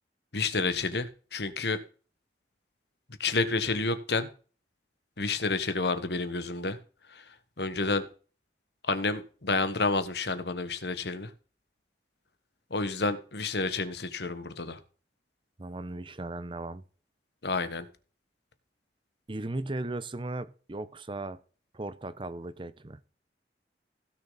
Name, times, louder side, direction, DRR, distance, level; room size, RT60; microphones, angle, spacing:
voice 1, 0.3-1.8 3.2-4.3 5.2-6.8 7.1-7.2 7.6-8.1 8.9-11.3 12.7-14.8 17.4-17.9, left 3 dB, 70° left, 1.3 m, -29 dB
voice 2, 15.6-16.8 19.3-21.4 21.7-23.0, right 2 dB, 30° right, 0.8 m, -37 dB
16.5 x 6.3 x 4.0 m
head